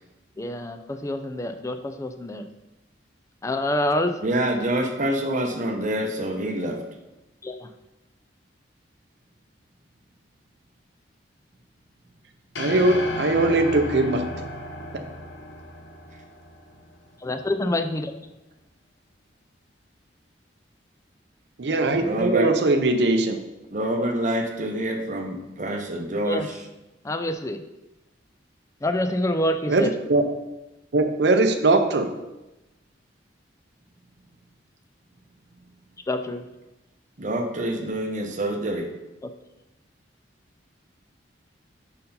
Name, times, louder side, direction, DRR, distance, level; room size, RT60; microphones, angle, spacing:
voice 1, 0.4-2.5 3.4-4.2 7.4-7.7 17.2-18.1 26.3-26.5 27.0-27.6 28.8-29.9 36.1-36.5 39.2-39.3, left 1 dB, 15° left, 8 dB, 0.4 m, -26 dB
voice 2, 4.2-6.8 22.0-22.5 23.7-26.4 37.2-38.9, right 1 dB, 45° right, 2 dB, 0.8 m, -26 dB
sound 1, 12.6-16.9, left 1 dB, 75° left, 0.8 m, -34 dB
voice 3, 12.6-14.3 14.9-15.1 21.6-23.4 29.7-30.2 30.9-32.1, right 2 dB, 65° right, 6 dB, 0.5 m, -21 dB
5.2 x 4.6 x 5.4 m, 0.98 s
head